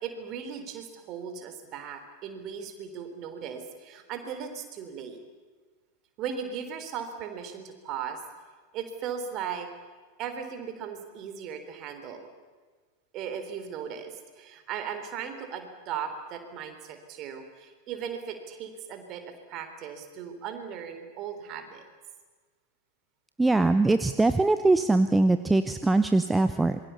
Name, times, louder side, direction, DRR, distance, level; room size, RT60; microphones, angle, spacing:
voice 1, 0.0-5.2 6.2-8.2 8.7-9.7 10.2-12.3 13.1-21.8, right 7 dB, 35° right, 7 dB, 3.9 m, -37 dB
voice 2, 23.4-26.8, right 2 dB, 10° right, 11 dB, 0.9 m, -22 dB
26.5 x 23.0 x 7.2 m, 1.5 s
figure-of-eight pair, 90°, 0 cm